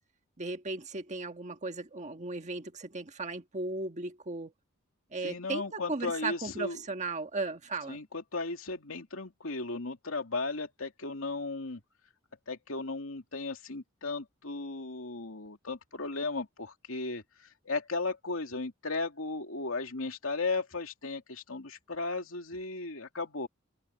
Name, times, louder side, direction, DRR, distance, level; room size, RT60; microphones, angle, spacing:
voice 1, 0.4-4.5 5.1-8.0, right 3 dB, 35° right, 1.6 m, -36 dB
voice 2, 5.2-6.8 7.9-11.8 12.5-23.5, left 3 dB, 85° left, 2.6 m, -36 dB
head